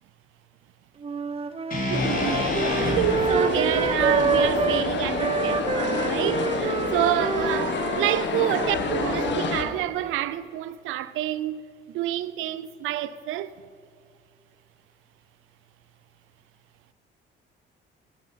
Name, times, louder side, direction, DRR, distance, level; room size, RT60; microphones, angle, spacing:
sound 1, 1.0-4.9 5.2-9.5, right 5 dB, 30° right, 0.7 m, -28 dB
sound 2, 1.7-5.9, left 1 dB, 45° left, 2.9 m, -33 dB
sound 3, 1.9-9.6, left 4 dB, 65° left, 1.4 m, -28 dB
voice 1, 1.9-11.6 11.9-13.5, right 13 dB, 85° right, 0.4 m, -28 dB
11.5 x 11.0 x 5.6 m
cardioid pair, 90°, 20 cm